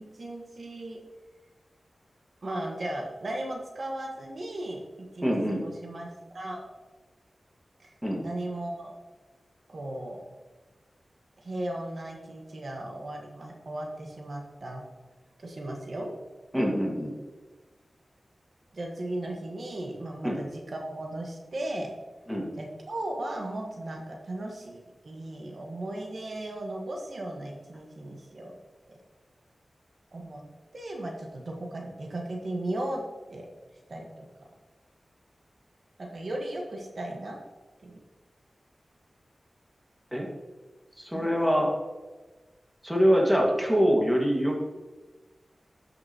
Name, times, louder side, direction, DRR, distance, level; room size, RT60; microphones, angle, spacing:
voice 1, 0.2-1.0 2.4-6.7 7.8-7.9 8.2-8.9 9.7-10.2 11.4-14.8 15.4-16.1 18.7-21.9 22.5-28.5 30.1-30.4 30.7-33.0 33.3-33.5 33.9-34.2 36.0-37.4 37.8-38.0 41.1-41.3, right 1 dB, 65° right, 0 dB, 1.5 m, -36 dB
voice 2, 5.2-5.6 8.0-8.2 16.5-17.1 20.2-20.4 22.3-22.5 40.1-40.3 41.0-41.7 42.8-44.6, equal, 5° right, -1 dB, 1.9 m, -24 dB
12.5 x 6.0 x 3.0 m, 1.3 s
wide cardioid pair, 60°, 0 cm